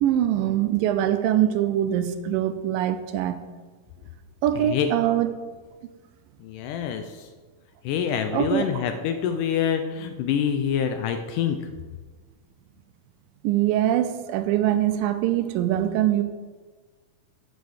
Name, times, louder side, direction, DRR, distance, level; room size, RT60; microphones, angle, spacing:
voice 1, 0.0-3.4 4.4-5.3 8.3-8.8 13.4-16.2, right 11 dB, 80° right, 10 dB, 2.2 m, -23 dB
voice 2, 6.4-7.3 7.8-11.6, left 8 dB, 80° left, 7 dB, 1.9 m, -26 dB
9.3 x 6.2 x 6.4 m, 1.4 s
omnidirectional pair, 4.1 m